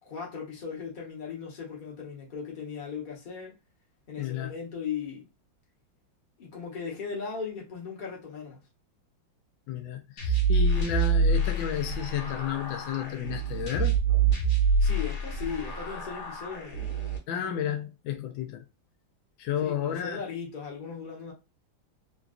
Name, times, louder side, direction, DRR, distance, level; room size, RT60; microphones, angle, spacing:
voice 1, 0.0-3.6 4.1-5.2 6.4-8.6 14.8-16.8 19.6-21.3, left 6 dB, 35° left, 0.9 m, -37 dB
voice 2, 4.2-4.5 9.7-14.0 17.3-18.6 19.4-20.2, left 9 dB, 85° left, 1.4 m, -32 dB
sound 1, 10.2-17.2, right 4 dB, 65° left, 1.7 m, -26 dB
3.9 x 2.3 x 2.4 m
omnidirectional pair, 2.1 m